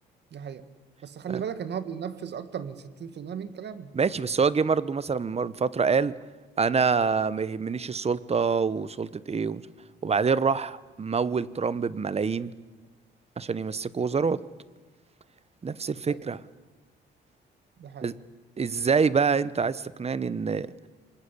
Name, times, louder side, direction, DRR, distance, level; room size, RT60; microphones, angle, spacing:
voice 1, 0.3-0.6 1.0-3.9 16.1-16.2 17.8-18.1, right 7 dB, 60° right, 11 dB, 2.0 m, -36 dB
voice 2, 3.9-6.1 6.6-9.6 10.0-12.5 13.4-14.4 15.6-16.4 18.0-18.1 18.6-20.7, right 5 dB, 30° right, 17 dB, 1.1 m, -26 dB
26.5 x 20.5 x 8.5 m, 1.3 s
cardioid pair, 90°, 20 cm